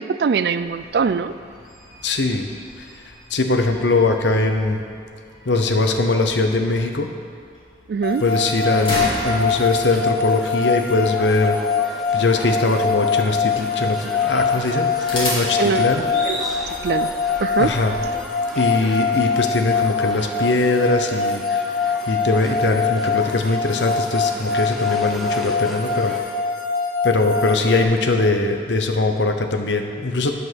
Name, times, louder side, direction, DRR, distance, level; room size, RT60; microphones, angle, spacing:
voice 1, 0.0-1.3 7.9-8.2 15.6-15.9 16.2-16.5 16.8-17.8, right 5 dB, 65° right, 12 dB, 0.3 m, -22 dB
sound 1, 0.6-18.1, left 1 dB, 30° left, 2.3 m, -35 dB
voice 2, 2.0-2.5 2.8-2.9 3.3-4.8 5.5-7.1 8.2-11.6 12.1-16.0 17.6-17.9 18.5-21.6 22.1-26.2 27.0-30.3, left 3 dB, 90° left, 5 dB, 0.8 m, -21 dB
sound 2, 8.0-27.8, left 5 dB, 50° left, 0.9 m, -24 dB
sound 3, 9.3-26.2, equal, ahead, 0.7 m, -37 dB
10.5 x 5.2 x 6.1 m, 2.3 s
head